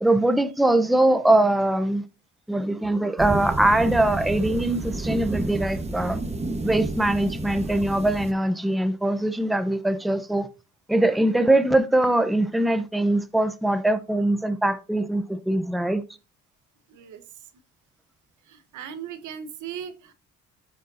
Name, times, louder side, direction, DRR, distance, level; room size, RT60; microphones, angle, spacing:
voice 1, 0.0-2.0 2.5-6.2 6.6-10.5 10.9-16.0, right 1 dB, ahead, 0.6 m, -22 dB
sound 1, 3.2-8.3, right 2 dB, 20° right, 1.2 m, -30 dB
voice 2, 16.9-17.2 18.5-20.1, right 8 dB, 80° right, 1.1 m, -38 dB
13.0 x 5.1 x 2.6 m
cardioid pair, 90°, 30 cm